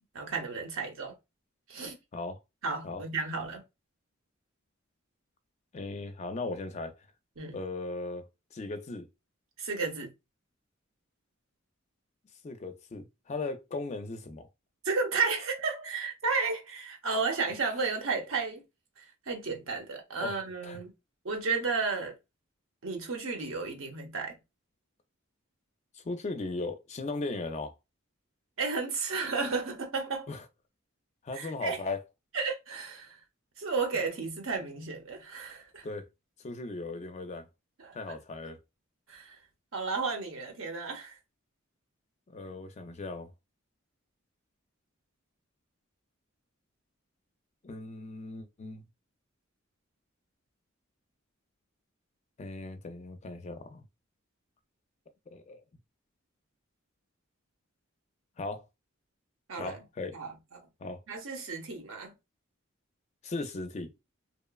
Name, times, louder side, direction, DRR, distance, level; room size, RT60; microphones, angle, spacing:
voice 1, 0.1-1.2 1.7-2.0 2.6-3.6 7.4-7.6 9.6-10.1 14.8-18.6 19.0-20.9 21.2-22.1 22.8-24.4 28.6-30.3 31.3-31.8 32.3-33.2 33.6-35.9 37.8-38.2 39.1-39.4 39.7-41.1 59.5-59.8 60.1-60.7 61.1-62.1, right 4 dB, 80° right, 0.8 m, -33 dB
voice 2, 5.7-7.0 7.5-8.3 8.5-9.1 12.4-14.5 20.2-20.4 20.6-20.8 25.9-27.7 30.3-30.4 31.2-32.0 35.8-36.1 36.4-37.5 37.9-38.6 42.3-43.3 47.6-48.8 52.4-53.8 55.3-55.6 58.4-58.6 59.6-60.2 60.8-61.0 63.2-63.9, left 3 dB, 35° left, 0.4 m, -37 dB
2.9 x 2.1 x 2.2 m
head